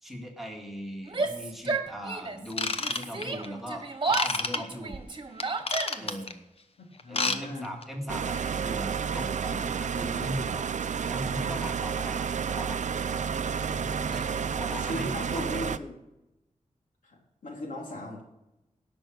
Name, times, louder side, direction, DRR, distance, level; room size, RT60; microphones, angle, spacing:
voice 1, 0.0-5.0 6.0-6.4 7.1-10.7 11.1-12.3 12.5-12.8 14.1-15.7, equal, ahead, 1 dB, 2.0 m, -39 dB
Yell, 1.0-2.5 2.8-6.2, right 3 dB, 35° right, 1.4 m, -32 dB
Ratchet pawl / Tools, 2.5-3.5 4.1-4.6 5.4-6.3 7.0-7.4 7.6-7.8 8.4-8.5, left 3 dB, 50° left, 1.0 m, -29 dB
voice 2, 7.0-7.7 13.6-14.1 14.7-16.0 17.0-18.2, left 1 dB, 90° left, -1 dB, 3.2 m, -38 dB
sound 1, 8.1-15.8, right 6 dB, 70° right, 0.5 m, -30 dB
17.5 x 6.2 x 6.3 m, 0.94 s
wide cardioid pair, 105°, 13 cm